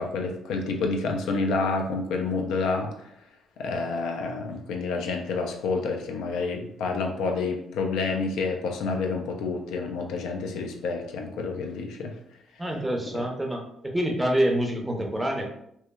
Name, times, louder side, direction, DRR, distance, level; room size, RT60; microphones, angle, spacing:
voice 1, 0.0-3.1 3.6-12.2, left 4 dB, 85° left, 3 dB, 0.4 m, -29 dB
voice 2, 12.6-13.6 13.9-15.5, right 1 dB, 10° right, 1 dB, 0.5 m, -26 dB
3.0 x 2.1 x 2.2 m, 0.73 s
cardioid pair, 90°, 0 cm